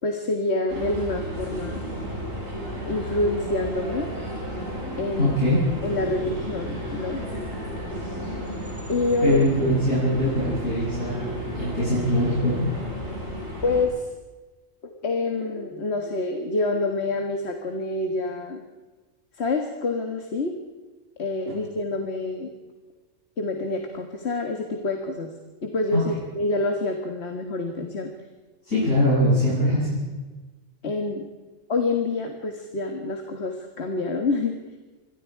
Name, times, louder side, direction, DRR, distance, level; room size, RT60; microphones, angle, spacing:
voice 1, 0.0-1.8 2.8-4.1 5.0-5.4 5.8-7.2 8.9-9.4 13.6-14.1 14.8-18.6 19.4-20.5 21.2-22.5 23.4-25.3 25.6-28.1 30.8-31.3 31.7-34.5, left 2 dB, 55° left, 4 dB, 2.0 m, -27 dB
sound 1, 0.7-13.8, equal, 85° right, 7.1 m, -33 dB
voice 2, 5.2-5.6 9.2-11.3 11.5-12.7 25.9-26.0 28.6-30.0, left 1 dB, 75° left, -10 dB, 8.5 m, -22 dB
27.5 x 22.5 x 4.7 m, 1.3 s
omnidirectional pair, 1.3 m